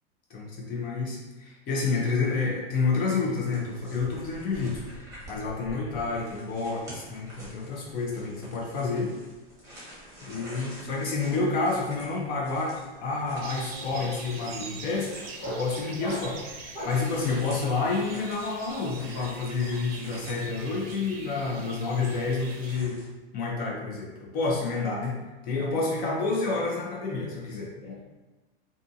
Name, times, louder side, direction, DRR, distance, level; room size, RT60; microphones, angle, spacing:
voice 1, 0.3-9.1 10.2-12.7 13.0-15.1 15.5-16.5 16.8-23.0 23.3-28.0, left 4 dB, 30° left, -3 dB, 0.6 m, -29 dB
sound 1, 3.4-23.1, equal, 10° right, 1.0 m, -48 dB
sound 2, 10.3-10.7 10.9-17.1, equal, 75° left, 1.1 m, -42 dB
sound 3, 13.4-22.8, right 4 dB, 90° right, 0.6 m, -44 dB
2.5 x 2.4 x 2.6 m, 1.2 s
supercardioid pair, 150°, 29 cm